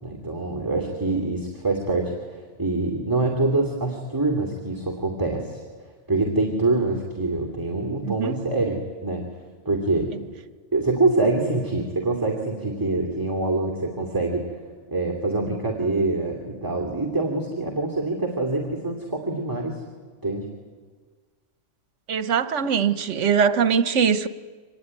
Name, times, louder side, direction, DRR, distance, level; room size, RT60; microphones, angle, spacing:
voice 1, 0.0-5.6 6.1-9.3 9.6-10.1 10.7-14.4 14.9-19.8 20.2-20.5, right 2 dB, 15° right, 2.5 m, -25 dB
voice 2, 8.1-8.4 22.1-24.3, right 7 dB, 75° right, 1.3 m, -22 dB
25.0 x 19.5 x 9.6 m
omnidirectional pair, 1.3 m